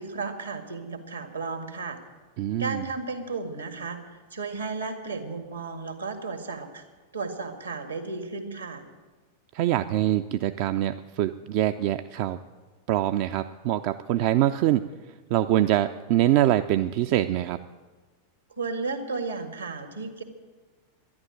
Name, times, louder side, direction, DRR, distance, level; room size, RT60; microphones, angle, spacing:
voice 1, 0.0-2.0 2.6-6.8 7.1-8.8 18.5-20.2, right 4 dB, 80° right, 6 dB, 1.8 m, -34 dB
voice 2, 2.4-2.8 9.5-12.4 12.9-14.8 15.3-17.6, right 13 dB, 45° right, 9 dB, 0.4 m, -24 dB
12.0 x 11.0 x 9.0 m, 1.3 s
figure-of-eight pair, 90°, 0 cm